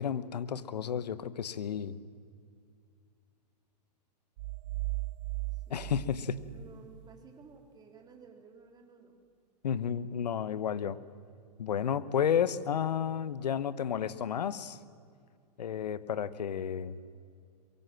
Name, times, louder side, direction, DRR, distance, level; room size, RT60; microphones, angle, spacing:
voice 1, 0.0-2.0 5.7-6.4 9.6-11.0 11.6-14.8 15.6-17.0, left 8 dB, 75° left, 16 dB, 1.1 m, -32 dB
sound 1, 4.4-7.2, right 22 dB, 45° right, 0.5 m, -37 dB
voice 2, 5.5-9.2, right 5 dB, 20° right, 3 dB, 3.6 m, -55 dB
23.0 x 23.0 x 7.7 m, 2.3 s
hypercardioid pair, 115°, 21 cm